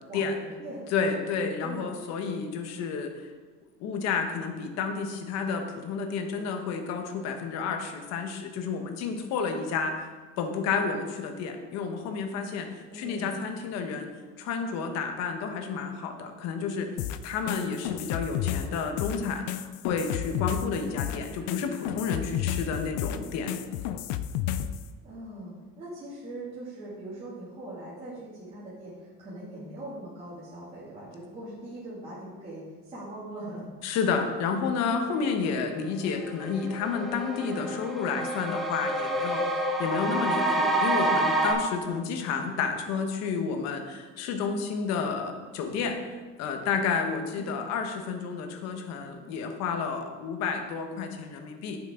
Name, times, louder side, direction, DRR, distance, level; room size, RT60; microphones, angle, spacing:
voice 1, 0.1-0.8 1.6-1.8 12.9-13.4 20.8-21.2 25.0-33.7 40.0-40.3 47.3-47.7, right 1 dB, 20° right, -10 dB, 2.6 m, -41 dB
voice 2, 0.9-3.1 3.8-9.9 10.4-12.7 12.9-14.1 14.4-16.9 17.2-23.5 33.8-51.8, left 5 dB, 60° left, 5 dB, 1.3 m, -31 dB
sound 1, 17.0-24.8, left 11 dB, 75° left, 0.6 m, -31 dB
sound 2, 35.7-35.8 36.2-41.5, right 1 dB, ahead, 1.1 m, -28 dB
10.0 x 7.5 x 3.8 m, 1.4 s
cardioid pair, 155°, 30 cm